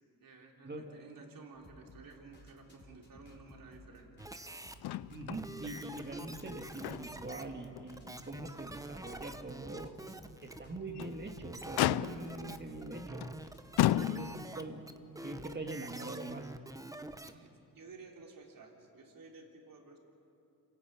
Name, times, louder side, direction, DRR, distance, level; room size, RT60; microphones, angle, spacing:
voice 1, 0.2-4.1 13.9-14.3 15.2-15.6 17.2-20.0, right 4 dB, 60° right, 1 dB, 3.7 m, -54 dB
sound 1, 1.5-14.1, left 1 dB, 25° left, 4.1 m, -58 dB
sound 2, 4.2-4.7 5.3-17.3, right 1 dB, 10° right, 1.1 m, -46 dB
Motor vehicle (road), 4.8-5.4 5.8-5.9 6.4-7.3 7.8-7.9 8.4-8.5 10.7-11.2 11.8-12.4 13.2-13.4 13.8-14.6 15.6-15.7, left 14 dB, 80° left, 0.6 m, -32 dB
voice 2, 5.1-9.9 10.4-13.3 13.9-14.9 15.2-16.5, right 2 dB, 25° right, 4 dB, 2.4 m, -43 dB
27.0 x 16.5 x 8.8 m, 2.9 s
cardioid pair, 75°, 38 cm